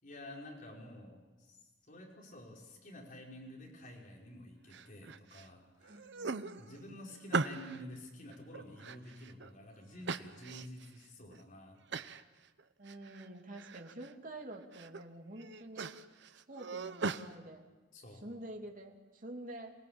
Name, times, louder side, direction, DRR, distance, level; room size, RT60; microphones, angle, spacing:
voice 1, 0.0-1.6 1.9-6.1 6.6-12.0 17.9-18.2, left 1 dB, 45° left, -2 dB, 5.4 m, -50 dB
sound 1, 4.7-5.5 5.8-7.8 8.3-9.5 10.1-10.9 11.3-11.4 11.9-12.2 12.6-13.3 13.6-14.1 14.5-15.0 15.4-17.3, right 4 dB, 65° right, 0.9 m, -40 dB
voice 2, 5.9-6.7 12.8-16.0 16.5-17.7 18.2-19.7, right 1 dB, 45° right, 2 dB, 2.8 m, -48 dB
27.0 x 19.0 x 8.9 m, 1.2 s
head